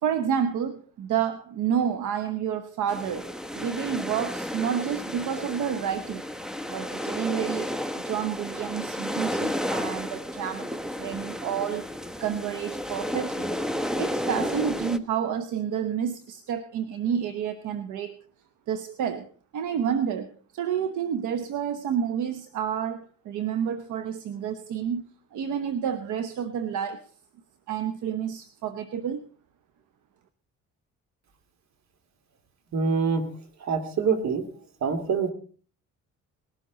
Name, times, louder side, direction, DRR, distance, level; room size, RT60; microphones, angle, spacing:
voice 1, 0.0-3.3 3.5-6.2 6.7-7.7 8.0-13.5 13.9-18.2 18.7-27.1 27.7-29.3, right 8 dB, 80° right, 11 dB, 1.1 m, -29 dB
sound 1, 2.9-15.0, equal, ahead, 0.9 m, -32 dB
voice 2, 32.7-33.3 33.6-34.5 34.8-35.3, right 5 dB, 65° right, 9 dB, 2.6 m, -25 dB
20.0 x 12.5 x 4.0 m, 0.41 s
cardioid pair, 90°, 30 cm